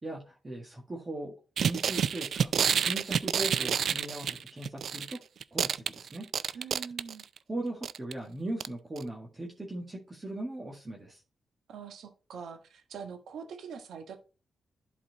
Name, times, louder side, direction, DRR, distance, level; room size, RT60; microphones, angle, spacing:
voice 1, 0.0-5.2 5.5-6.3 7.5-11.2, right 1 dB, 25° right, -2 dB, 1.7 m, -39 dB
sound 1, 1.6-5.2 5.4-7.4 7.8-8.1 8.6-8.7 9.0-9.1, right 7 dB, 70° right, 0.4 m, -29 dB
voice 2, 6.5-7.2 11.7-14.2, right 6 dB, 85° right, 6 dB, 1.5 m, -43 dB
11.5 x 4.3 x 3.9 m, 0.34 s
cardioid pair, 100°, 0 cm